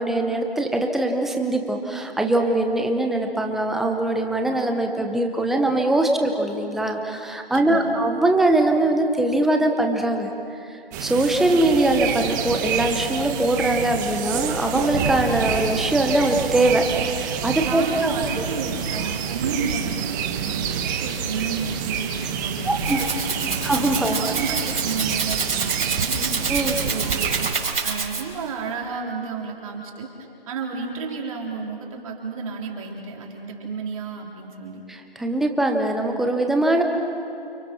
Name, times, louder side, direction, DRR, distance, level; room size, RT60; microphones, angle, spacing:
voice 1, 0.0-10.3 10.7-16.8 17.1-18.1 22.7-23.0 23.6-24.1 26.5-26.7 34.9-36.8, right 1 dB, ahead, 3 dB, 0.8 m, -22 dB
voice 2, 7.5-7.9 17.6-23.6 24.0-26.3 26.7-30.1 30.5-34.8, right 4 dB, 35° right, -1 dB, 3.8 m, -32 dB
sound 1, 10.9-27.5, right 7 dB, 20° right, 1.3 m, -28 dB
Rattle (instrument), 22.5-28.5, right 5 dB, 70° right, 4.9 m, -28 dB
29.5 x 28.5 x 6.2 m, 2.8 s
figure-of-eight pair, 150°, 30 cm